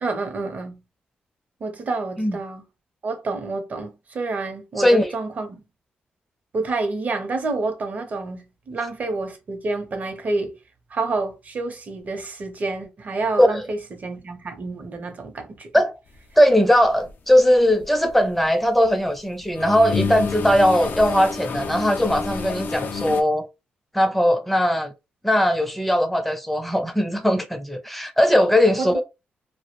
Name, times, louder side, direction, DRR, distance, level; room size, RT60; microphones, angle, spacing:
voice 1, 0.0-0.8 1.6-2.6 3.0-5.7 6.5-10.5 10.9-15.7 28.8-29.0, right 3 dB, 45° right, 0.6 m, -28 dB
voice 2, 4.8-5.1 13.4-13.6 15.7-15.9 16.4-23.5 23.9-24.9 25.2-29.0, equal, 5° left, 0.5 m, -19 dB
sound 1, 16.8-17.1 17.6-18.9 19.3-23.2, left 5 dB, 60° left, 0.4 m, -29 dB
2.2 x 2.0 x 3.0 m
cardioid pair, 105°, 4 cm